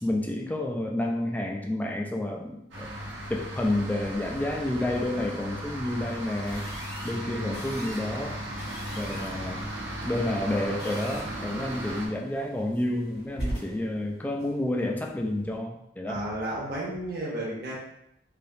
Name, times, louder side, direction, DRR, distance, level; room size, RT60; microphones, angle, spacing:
voice 1, 0.0-2.9 3.3-6.7 7.0-8.4 8.9-9.7 10.0-16.2, left 1 dB, 10° left, 1 dB, 0.3 m, -30 dB
sound 1, 2.7-12.1, right 1 dB, 85° right, 0.8 m, -36 dB
sound 2, 6.5-15.6, equal, 60° left, 1.3 m, -42 dB
voice 2, 7.2-7.7 16.1-17.7, right 1 dB, 50° right, -6 dB, 0.8 m, -33 dB
3.4 x 2.8 x 2.6 m, 0.78 s
head